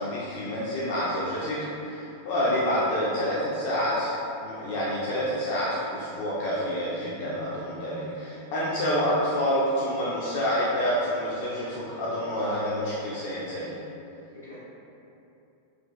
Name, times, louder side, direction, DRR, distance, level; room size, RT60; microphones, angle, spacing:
voice 1, 0.0-13.8, equal, 50° left, -7 dB, 0.4 m, -28 dB
voice 2, 2.7-3.1 14.3-14.6, left 1 dB, 85° left, -11 dB, 1.1 m, -44 dB
2.8 x 2.5 x 2.4 m, 2.8 s
figure-of-eight pair, 90°, 0 cm